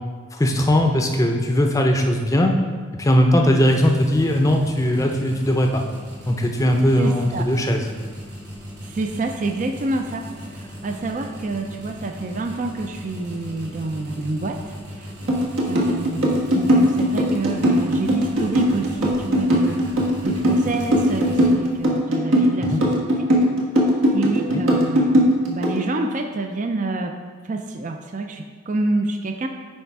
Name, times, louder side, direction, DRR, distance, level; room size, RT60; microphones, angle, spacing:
voice 1, 0.3-2.5 2.9-5.8 6.3-7.8 22.6-22.8 24.5-24.6, equal, 15° left, 3 dB, 0.5 m, -19 dB
sound 1, 3.6-21.9, equal, 55° right, 1.8 m, -37 dB
voice 2, 7.0-7.5 8.8-15.1 15.6-19.8 20.2-23.3 24.1-25.2 25.5-29.5, right 2 dB, 40° right, 5 dB, 0.4 m, -28 dB
sound 2, 15.3-25.8, equal, 75° right, 1.3 m, -18 dB
9.6 x 3.4 x 4.6 m, 1.5 s
head